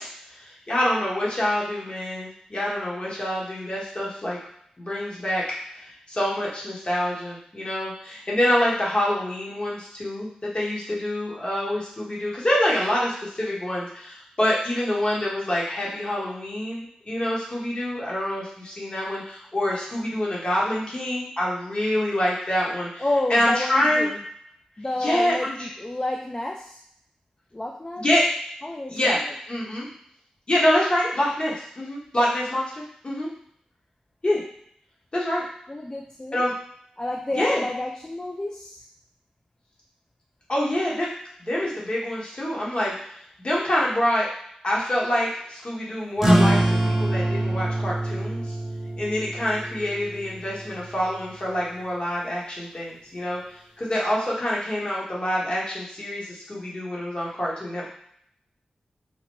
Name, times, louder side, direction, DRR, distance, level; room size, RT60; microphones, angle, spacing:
voice 1, 0.3-4.4 4.8-5.4 5.7-24.1 25.0-25.7 28.0-28.2 28.9-29.2 29.5-29.9 30.5-33.3 34.2-34.4 35.1-35.4 36.3-36.5 37.3-37.6 40.5-41.1 41.4-43.1 43.4-44.3 44.6-48.4 49.0-53.4 53.8-57.9, left 1 dB, 40° left, -5 dB, 1.1 m, -26 dB
voice 2, 23.0-24.2 24.8-26.8 27.5-28.1 28.6-29.2 35.7-36.4 37.0-38.8, left 1 dB, 25° left, 0 dB, 0.3 m, -30 dB
sound 1, 46.2-51.3, right 1 dB, 15° right, 0.8 m, -24 dB
2.9 x 2.1 x 3.0 m, 0.69 s
cardioid pair, 45°, 3 cm